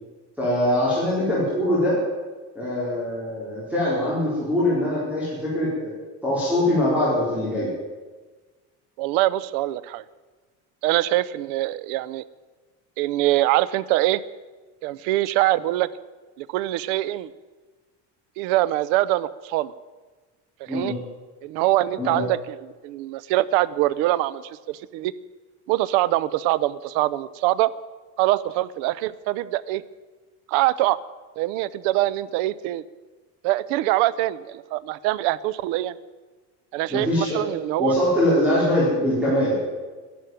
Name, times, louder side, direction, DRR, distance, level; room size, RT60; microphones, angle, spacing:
voice 1, 0.4-2.0 2.5-5.9 6.2-7.7 20.7-20.9 22.0-22.2 36.9-37.4 37.8-39.6, left 1 dB, 5° right, -8 dB, 4.2 m, -22 dB
voice 2, 9.0-10.0 10.8-12.2 13.0-14.2 14.8-15.9 16.4-17.3 18.4-19.7 20.7-20.9 21.4-25.1 25.7-27.7 28.2-29.8 30.5-31.0 31.4-32.8 33.4-36.0 36.7-37.9, right 16 dB, 85° right, 18 dB, 0.8 m, -23 dB
13.0 x 11.5 x 9.1 m, 1.3 s
cardioid pair, 175°, 32 cm